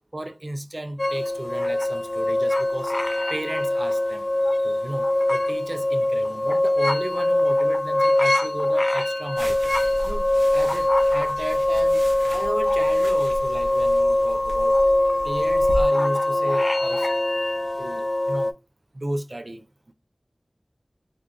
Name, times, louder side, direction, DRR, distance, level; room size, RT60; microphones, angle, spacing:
voice 1, 0.1-2.9 3.3-4.3 4.6-9.6 10.0-14.8 15.2-17.1 17.8-18.5 18.9-19.6, right 1 dB, 45° right, 0.3 m, -34 dB
sound 1, 1.0-18.5, left 1 dB, 45° left, 0.3 m, -22 dB
sound 2, 9.4-15.9, equal, 85° right, 0.6 m, -35 dB
2.4 x 2.3 x 3.5 m
wide cardioid pair, 55°, 0 cm